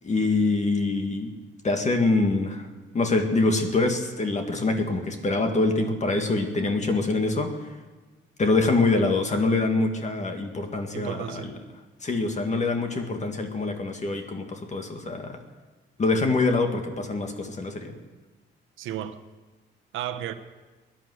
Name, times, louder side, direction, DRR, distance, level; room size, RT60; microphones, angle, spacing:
voice 1, 0.0-1.3 1.6-2.7 2.9-7.6 8.4-11.6 12.0-15.4 16.0-17.9, left 3 dB, 35° left, 2.0 m, -25 dB
voice 2, 10.9-11.5 18.8-19.2 19.9-20.3, right 11 dB, 85° right, 1.1 m, -33 dB
17.0 x 11.0 x 7.9 m
cardioid pair, 90°, 20 cm